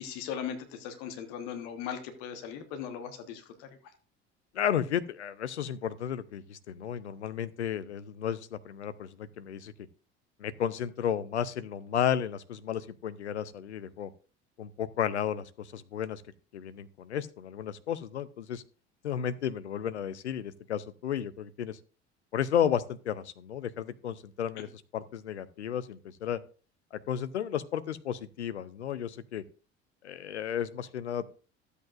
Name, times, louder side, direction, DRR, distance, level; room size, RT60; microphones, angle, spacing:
voice 1, 0.0-3.8 24.6-24.7, left 8 dB, 55° left, 7 dB, 1.4 m, -39 dB
voice 2, 4.5-9.7 10.4-14.1 14.6-16.2 16.5-18.6 19.0-21.8 22.3-24.7 24.9-26.4 27.1-29.4 30.0-31.3, left 9 dB, 80° left, 14 dB, 0.6 m, -33 dB
12.5 x 8.1 x 2.5 m, 0.37 s
figure-of-eight pair, 60°, 34 cm